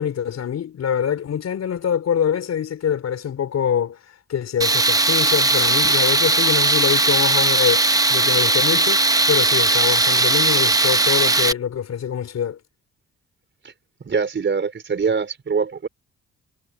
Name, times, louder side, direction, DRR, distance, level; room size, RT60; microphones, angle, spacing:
voice 1, 0.0-4.0 4.3-12.6, left 8 dB, 60° left, 4.3 m, -24 dB
Tools, 4.6-11.5, right 2 dB, 10° right, 1.0 m, -18 dB
voice 2, 14.0-15.9, right 5 dB, 40° right, 4.2 m, -23 dB
cardioid pair, 90°, 30 cm